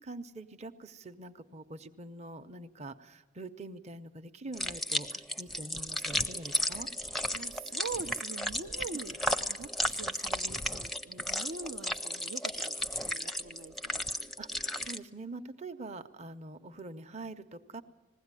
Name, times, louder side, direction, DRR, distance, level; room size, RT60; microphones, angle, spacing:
voice 1, 0.0-6.9 14.4-14.5 14.8-17.8, right 2 dB, 35° right, 10 dB, 0.7 m, -44 dB
sound 1, 4.5-15.0, left 1 dB, ahead, 0.6 m, -34 dB
voice 2, 7.3-9.2 9.5-14.0, right 4 dB, 70° right, 8 dB, 0.6 m, -44 dB
20.5 x 16.0 x 9.7 m, 1.4 s
head